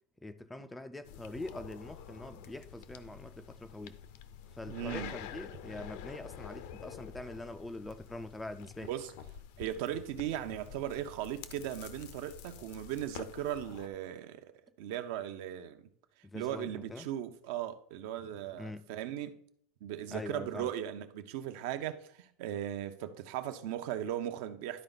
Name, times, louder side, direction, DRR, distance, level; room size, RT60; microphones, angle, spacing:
voice 1, 0.2-4.0 4.5-8.9 16.2-17.1 18.6-18.9 20.1-20.7, left 2 dB, 5° left, 0.4 m, -44 dB
sound 1, 1.0-13.9, left 9 dB, 65° left, 0.6 m, -48 dB
voice 2, 4.7-5.1 8.8-9.1 9.6-15.9 16.3-19.4 19.8-24.8, right 11 dB, 60° right, 0.7 m, -38 dB
11.5 x 4.4 x 4.0 m
supercardioid pair, 160°, 0 cm